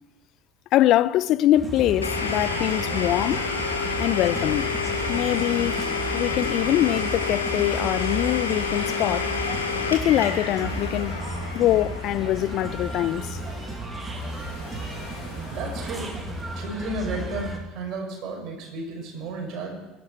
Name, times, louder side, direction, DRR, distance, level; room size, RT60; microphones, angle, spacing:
voice 1, 0.7-3.5 4.0-4.7 5.1-5.8 6.1-9.4 9.9-11.2 11.5-13.4, left 13 dB, 50° left, 0.5 m, -23 dB
sound 1, 1.5-17.6, right 2 dB, 20° right, 2.8 m, -34 dB
Domestic sounds home sounds, 2.0-13.7, left 5 dB, 80° left, 2.0 m, -29 dB
sound 2, 9.2-16.5, left 4 dB, 65° left, 6.3 m, -47 dB
voice 2, 15.5-16.1 16.5-19.7, right 2 dB, 50° right, 5.6 m, -33 dB
22.0 x 12.0 x 4.5 m
figure-of-eight pair, 65°, 0 cm